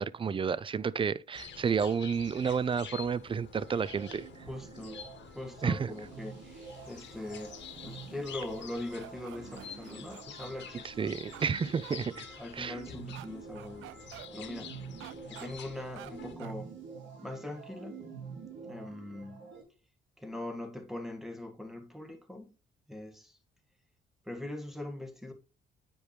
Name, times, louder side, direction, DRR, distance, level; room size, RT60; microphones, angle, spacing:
voice 1, 0.0-4.5 5.6-5.9 10.8-12.2 12.5-12.8, right 6 dB, 25° right, 0.4 m, -31 dB
sound 1, 1.3-16.4, left 8 dB, 65° left, 1.2 m, -49 dB
sound 2, 3.6-19.6, right 6 dB, 70° right, 3.2 m, -48 dB
voice 2, 4.5-5.1 5.3-11.1 12.4-13.9 14.3-14.8 15.3-16.7 17.2-18.1 18.6-19.5 20.2-22.5 22.9-23.4 24.2-25.3, left 1 dB, ahead, 1.7 m, -41 dB
sound 3, 9.0-10.5 11.3-11.5 11.8-12.0 13.1-13.3 13.6-14.3 15.0-15.5 16.0-16.1 16.4-16.6, right 15 dB, 90° right, 0.5 m, -48 dB
8.7 x 5.0 x 3.2 m
cardioid pair, 90°, 20 cm